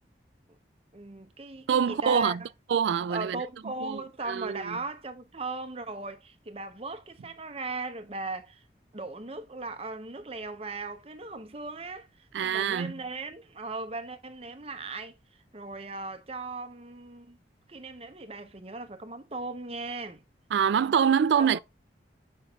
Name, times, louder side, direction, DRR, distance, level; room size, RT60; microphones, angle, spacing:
voice 1, 0.9-2.4 3.1-8.6 8.9-12.1 12.4-15.1 15.5-17.4 17.7-20.2 21.4-21.6, right 3 dB, 35° right, 0.9 m, -38 dB
voice 2, 1.7-2.4 2.7-3.4 3.8-4.0 4.3-4.8 12.3-12.9 20.5-21.6, right 7 dB, 75° right, 0.3 m, -25 dB
7.7 x 5.4 x 2.4 m
head